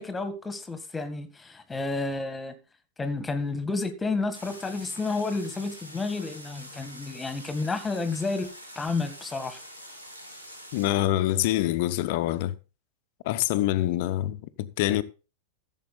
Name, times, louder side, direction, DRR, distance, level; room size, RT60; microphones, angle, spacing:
voice 1, 0.0-2.5 3.0-8.5 8.8-9.6, left 3 dB, 10° left, 1.8 m, -31 dB
sound 1, 4.3-10.9, equal, 85° right, 2.7 m, -45 dB
voice 2, 10.7-12.5 13.2-15.0, left 14 dB, 50° left, 0.8 m, -25 dB
15.0 x 7.4 x 3.9 m
figure-of-eight pair, 90°, 0 cm